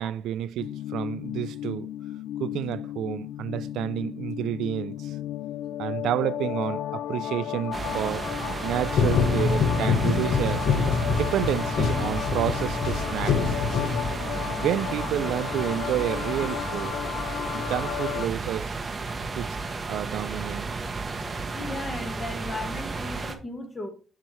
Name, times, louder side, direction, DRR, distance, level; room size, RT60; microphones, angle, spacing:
voice 1, 0.0-1.9 2.4-5.1 5.8-8.3 8.6-10.7 11.1-13.6 14.4-16.9 17.5-18.7 19.4-19.6 19.9-20.7, right 11 dB, 85° right, 0.3 m, -30 dB
sound 1, 0.6-18.3, left 11 dB, 75° left, 0.3 m, -34 dB
sound 2, 7.7-23.4, right 3 dB, 20° right, 0.8 m, -33 dB
sound 3, 8.9-14.4, left 5 dB, 50° left, 0.8 m, -25 dB
voice 2, 21.5-23.9, left 2 dB, 15° left, 1.4 m, -36 dB
7.5 x 6.7 x 3.1 m
cardioid pair, 175°, 0 cm